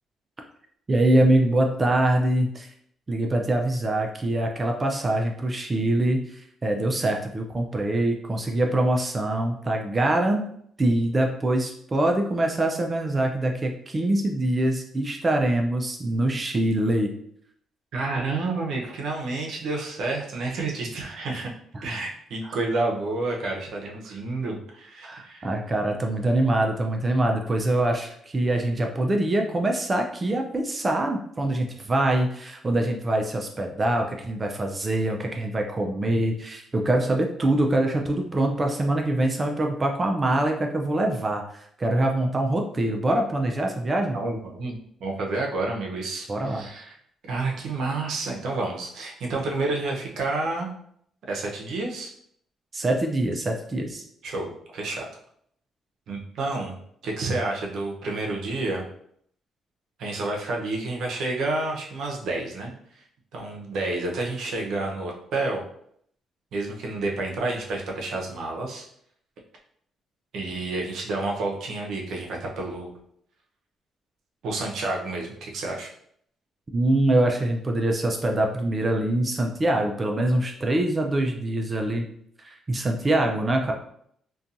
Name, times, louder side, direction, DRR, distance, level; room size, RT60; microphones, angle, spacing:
voice 1, 0.9-2.7 3.1-10.5 10.8-17.1 21.7-21.9 25.0-44.2 46.3-46.6 52.7-54.0 76.7-82.1 82.4-83.7, right 1 dB, 30° right, 2 dB, 0.3 m, -24 dB
voice 2, 17.9-21.5 21.8-25.5 44.1-47.0 47.2-50.7 51.3-52.1 54.2-55.1 56.1-56.8 57.0-58.8 60.0-62.7 63.3-65.6 66.5-68.9 70.3-72.9 74.4-75.9, right 2 dB, 75° right, 0 dB, 0.6 m, -29 dB
2.6 x 2.2 x 2.5 m, 0.67 s
cardioid pair, 90°, 0 cm